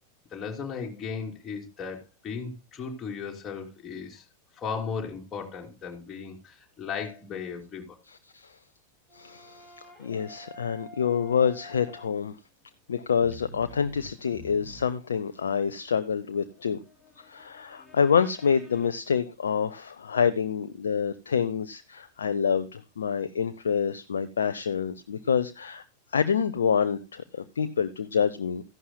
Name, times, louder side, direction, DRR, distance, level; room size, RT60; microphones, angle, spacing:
voice 1, 0.3-4.2 4.6-8.0, left 5 dB, 25° left, 0 dB, 3.1 m, -36 dB
voice 2, 8.1-8.5 9.1-12.3 12.9-16.8 17.2-25.8 26.1-28.6, left 7 dB, 70° left, 10 dB, 0.6 m, -27 dB
sound 1, 9.1-12.3 13.1-18.9, equal, ahead, 5.2 m, -49 dB
14.5 x 11.0 x 2.2 m, 0.26 s
figure-of-eight pair, 90°, 0 cm